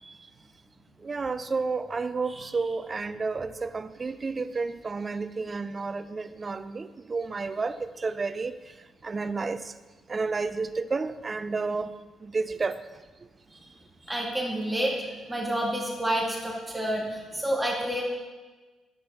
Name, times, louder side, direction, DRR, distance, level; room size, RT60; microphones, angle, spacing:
voice 1, 1.0-8.5 9.0-9.7 10.1-11.9 12.2-12.8, right 4 dB, 35° right, 13 dB, 0.5 m, -31 dB
voice 2, 14.0-15.0 15.3-18.0, right 1 dB, 10° right, -2 dB, 2.2 m, -29 dB
9.4 x 8.7 x 4.2 m, 1.3 s
hypercardioid pair, 55°, 0 cm